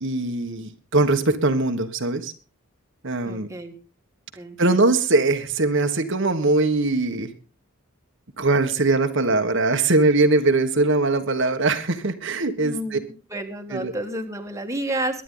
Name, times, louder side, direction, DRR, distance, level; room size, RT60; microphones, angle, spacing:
voice 1, 0.0-2.3 3.0-3.5 4.6-7.3 8.4-13.0 13.7-13.9, right 2 dB, 55° right, 6 dB, 1.4 m, -21 dB
voice 2, 3.2-3.7 4.4-4.9 12.6-15.2, right 1 dB, 15° right, 4 dB, 1.7 m, -31 dB
23.0 x 10.0 x 3.9 m, 0.35 s
head